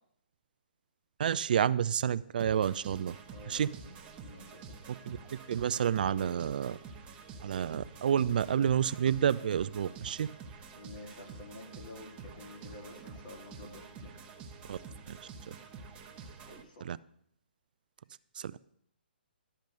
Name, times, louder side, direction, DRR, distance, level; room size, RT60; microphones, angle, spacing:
voice 1, 1.2-3.2 3.5-3.7 5.1-5.2 5.5-6.8 7.4-10.3 14.7-14.8 15.1-15.2 15.5-15.6 16.8-17.0 18.4-18.5, right 9 dB, 55° right, 17 dB, 0.4 m, -29 dB
sound 1, 2.4-16.6, right 5 dB, 20° right, 1.1 m, -48 dB
voice 2, 3.2-3.9 4.2-4.8 10.7-14.1 16.5-16.9, left 2 dB, 55° left, 1 dB, 3.5 m, -50 dB
12.0 x 5.1 x 6.7 m, 0.68 s
hypercardioid pair, 135°, 6 cm